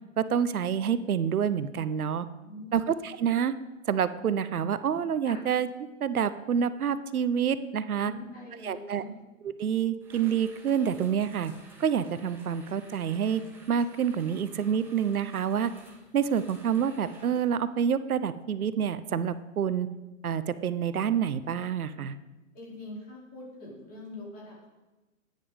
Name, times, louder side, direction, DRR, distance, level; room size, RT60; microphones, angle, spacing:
voice 1, 0.2-2.3 2.7-3.5 3.9-5.7 6.0-8.1 8.6-9.0 9.6-11.5 11.8-13.4 13.7-15.7 16.1-19.9 20.2-22.2, right 8 dB, 90° right, 13 dB, 0.9 m, -27 dB
voice 2, 2.2-2.8 5.2-5.4 7.9-9.2 22.5-24.7, left 2 dB, 20° left, -5 dB, 4.7 m, -43 dB
sound 1, 10.0-17.6, right 2 dB, 5° right, 1.9 m, -54 dB
15.5 x 9.5 x 5.1 m, 1.1 s
hypercardioid pair, 145°, 42 cm